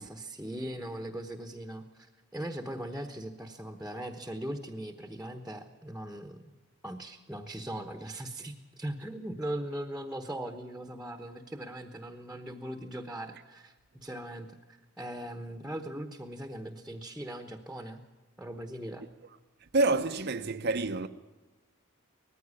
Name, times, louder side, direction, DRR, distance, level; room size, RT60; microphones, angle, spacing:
voice 1, 0.0-6.5 6.8-18.0 18.4-19.0, right 1 dB, 5° right, 1.1 m, -40 dB
voice 2, 19.7-21.1, right 2 dB, 50° right, 0.7 m, -27 dB
19.5 x 15.0 x 9.7 m
head